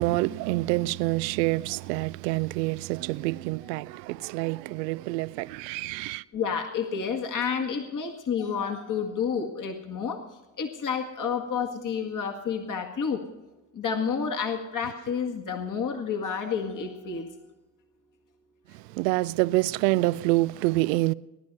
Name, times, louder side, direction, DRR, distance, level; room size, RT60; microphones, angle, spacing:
voice 1, 0.0-6.2 18.7-21.1, right 19 dB, 80° right, 0.6 m, -27 dB
voice 2, 6.3-10.2 10.6-13.2 13.7-17.3, left 6 dB, 40° left, 1.8 m, -30 dB
18.0 x 11.5 x 5.4 m
hypercardioid pair, 55°, 49 cm